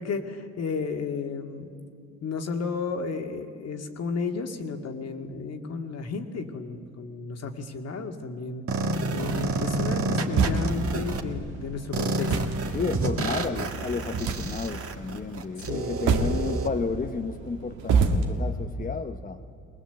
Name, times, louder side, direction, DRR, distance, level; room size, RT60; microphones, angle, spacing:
voice 1, 0.0-1.8 2.2-8.6 9.1-12.3 15.6-15.9, left 4 dB, 55° left, 5 dB, 2.1 m, -33 dB
sound 1, 8.7-11.2 11.9-16.7, right 3 dB, 50° right, 1.9 m, -29 dB
sound 2, 9.2-18.3, right 4 dB, 85° right, 1.8 m, -29 dB
voice 2, 12.7-19.4, left 5 dB, 30° left, 6 dB, 0.9 m, -32 dB
20.5 x 20.0 x 8.0 m, 2.6 s
cardioid pair, 90°, 30 cm